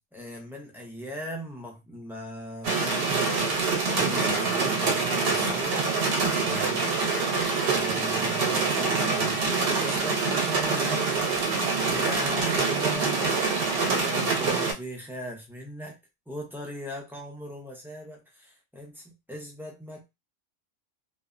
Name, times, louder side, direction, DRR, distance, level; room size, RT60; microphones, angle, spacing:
voice 1, 0.1-3.5 3.9-5.9 6.3-7.0 7.7-11.2 11.9-13.4 14.0-16.0 16.3-20.0, equal, 5° right, 0.4 m, -38 dB
sound 1, 2.6-14.7, right 4 dB, 55° right, 0.8 m, -25 dB
2.6 x 2.0 x 2.4 m
omnidirectional pair, 1.3 m